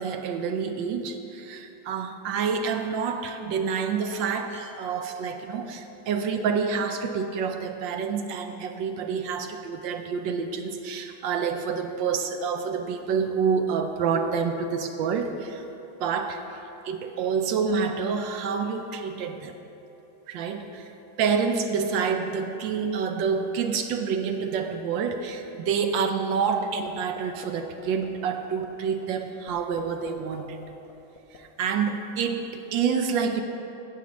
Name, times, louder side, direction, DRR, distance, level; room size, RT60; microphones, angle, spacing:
voice 1, 0.0-15.6 16.0-16.4 16.8-19.6 20.3-20.9 21.2-30.6 31.3-33.4, right 6 dB, 75° right, 6 dB, 1.2 m, -28 dB
sound 1, 26.6-26.9 27.2-27.5 27.8-28.1 28.4-28.7 29.0-29.1 29.5-30.1 30.4-31.4, left 8 dB, 85° left, 1.7 m, -45 dB
15.5 x 7.2 x 3.1 m, 2.9 s
omnidirectional pair, 2.3 m